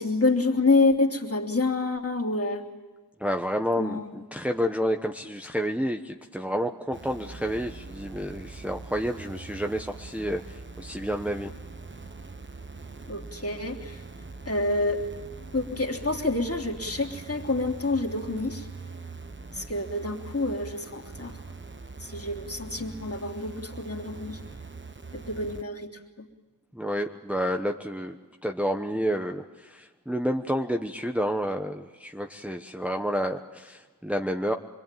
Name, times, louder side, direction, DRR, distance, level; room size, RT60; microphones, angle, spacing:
voice 1, 0.0-2.7 3.8-4.1 13.1-14.0 14.4-15.1 15.5-18.7 19.5-21.4 22.0-24.4 25.1-25.9 26.2-26.3, left 3 dB, 35° left, 0 dB, 3.2 m, -27 dB
voice 2, 3.2-11.5 26.7-34.5, equal, 5° right, 3 dB, 1.1 m, -30 dB
sound 1, 6.9-25.6, right 3 dB, 30° right, 1.1 m, -42 dB
26.5 x 22.5 x 9.2 m, 1.2 s
wide cardioid pair, 75°, 38 cm